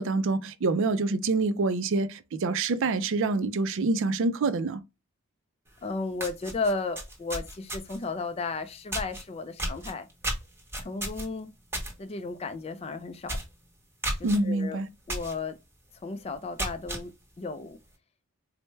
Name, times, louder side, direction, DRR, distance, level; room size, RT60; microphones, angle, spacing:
voice 1, 0.0-4.8 14.2-14.9, right 3 dB, 55° right, 0.4 m, -26 dB
sound 1, 5.7-5.8 6.1-8.1 8.9-9.2 9.6-11.9 12.3-12.5 12.8-12.9 13.2-13.5 14.0-14.4 15.1-15.3 15.8-15.9 16.4-17.0, right 1 dB, 10° right, 0.9 m, -33 dB
voice 2, 5.8-10.1 10.8-11.5 12.0-13.4 14.2-14.8 15.1-15.6 16.0-17.8, left 3 dB, 25° left, 0.3 m, -34 dB
4.3 x 2.1 x 3.2 m
head